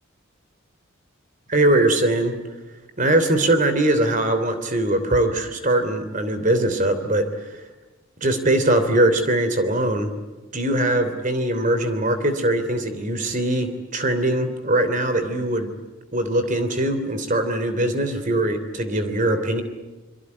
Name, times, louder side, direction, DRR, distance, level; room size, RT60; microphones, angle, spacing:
voice 1, 1.5-2.4 3.0-7.5 8.2-10.1 10.5-15.7 16.1-19.6, right 1 dB, 40° right, 9 dB, 3.1 m, -21 dB
25.0 x 24.0 x 9.7 m, 1.2 s
head